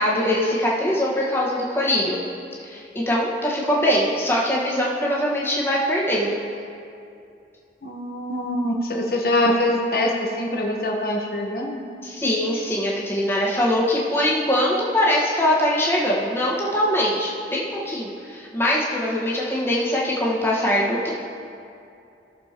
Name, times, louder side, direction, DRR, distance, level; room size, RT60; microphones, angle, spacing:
voice 1, 0.0-2.2 2.6-6.4 12.0-21.1, equal, 15° left, -6 dB, 1.4 m, -22 dB
voice 2, 7.8-11.8, left 1 dB, 55° left, 0 dB, 1.2 m, -24 dB
16.5 x 6.7 x 3.0 m, 2.6 s
head